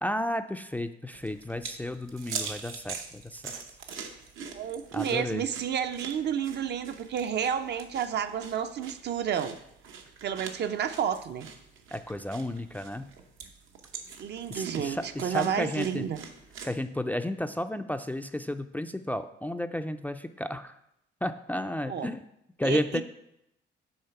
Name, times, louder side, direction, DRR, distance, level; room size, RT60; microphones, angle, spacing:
voice 1, 0.0-3.6 4.9-5.4 11.9-13.1 14.5-16.0 16.6-20.8 21.2-22.2 22.6-23.0, left 1 dB, 10° left, 9 dB, 0.3 m, -33 dB
sound 1, 1.1-16.7, right 5 dB, 80° right, 0.9 m, -43 dB
voice 2, 4.5-9.5 10.2-11.5 14.2-16.2 21.9-22.1 22.6-23.0, right 8 dB, 60° right, 9 dB, 0.5 m, -31 dB
6.5 x 4.0 x 5.7 m, 0.80 s
cardioid pair, 90°, 20 cm